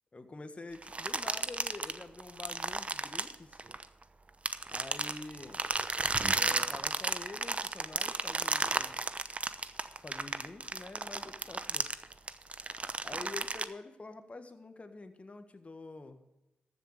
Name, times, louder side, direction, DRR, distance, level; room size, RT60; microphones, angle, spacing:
voice 1, 0.1-3.6 4.7-5.6 6.4-9.1 9.9-11.9 13.0-16.2, left 3 dB, 35° left, 8 dB, 1.7 m, -47 dB
sound 1, 0.8-4.0 4.5-13.6, right 3 dB, 35° right, 0.9 m, -34 dB
14.0 x 7.0 x 6.8 m, 0.96 s
supercardioid pair, 45°, 4 cm